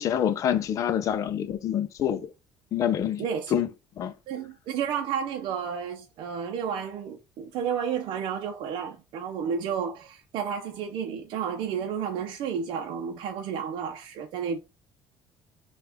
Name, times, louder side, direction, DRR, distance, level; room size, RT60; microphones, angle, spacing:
voice 1, 0.0-2.3 2.7-3.3 3.5-3.7 4.0-4.1, left 9 dB, 40° left, 0.5 m, -26 dB
voice 2, 3.2-3.5 4.3-14.6, right 7 dB, 65° right, 0.6 m, -31 dB
6.0 x 2.4 x 3.5 m
cardioid pair, 170°, 9 cm